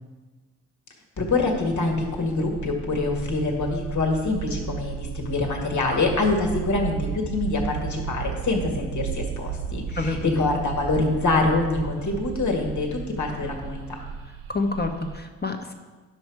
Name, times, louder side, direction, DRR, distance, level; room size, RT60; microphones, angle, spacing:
voice 1, 1.2-14.0, left 3 dB, 55° left, 1 dB, 1.9 m, -25 dB
sound 1, 1.2-15.2, right 8 dB, 80° right, 0.8 m, -34 dB
voice 2, 10.0-10.5 14.5-15.7, left 3 dB, 30° left, 4 dB, 1.4 m, -28 dB
10.0 x 6.3 x 4.8 m, 1.3 s
supercardioid pair, 50°, 35 cm